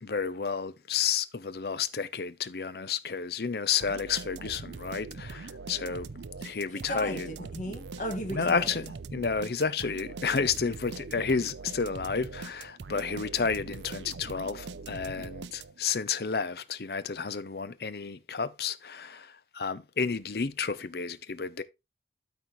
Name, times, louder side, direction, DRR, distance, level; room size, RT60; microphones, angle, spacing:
voice 1, 0.0-6.1 6.4-7.3 8.3-21.6, left 5 dB, 65° left, 0.6 m, -31 dB
sound 1, 3.8-16.0, right 4 dB, 85° right, 0.5 m, -42 dB
voice 2, 6.7-8.8, equal, 45° left, 1.8 m, -36 dB
13.0 x 4.3 x 3.1 m
head